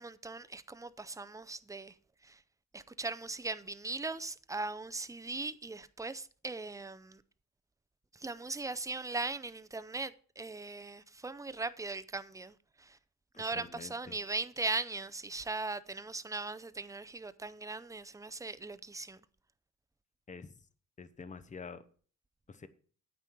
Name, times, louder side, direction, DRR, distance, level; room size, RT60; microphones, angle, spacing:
voice 1, 0.0-1.9 2.2-2.4 2.7-7.2 8.1-13.0 13.4-19.2, right 3 dB, 10° right, 0.5 m, -39 dB
voice 2, 13.3-14.2 20.3-20.5 21.0-21.8 22.5-22.7, left 5 dB, 25° left, 0.8 m, -47 dB
9.4 x 8.5 x 4.5 m
cardioid pair, 115°, 30 cm